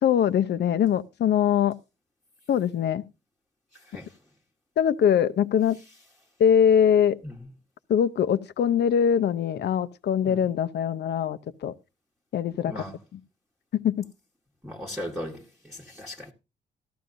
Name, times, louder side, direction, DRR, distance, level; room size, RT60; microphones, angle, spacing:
voice 1, 0.0-1.8 2.5-3.0 4.8-5.8 6.4-7.2 7.9-11.7 12.3-12.8 13.7-14.1, left 8 dB, 60° left, 0.7 m, -22 dB
voice 2, 3.7-4.2 7.2-7.5 10.3-10.4 12.6-13.0 14.6-16.3, left 1 dB, ahead, 1.3 m, -38 dB
14.5 x 12.0 x 2.6 m
cardioid pair, 90°, 20 cm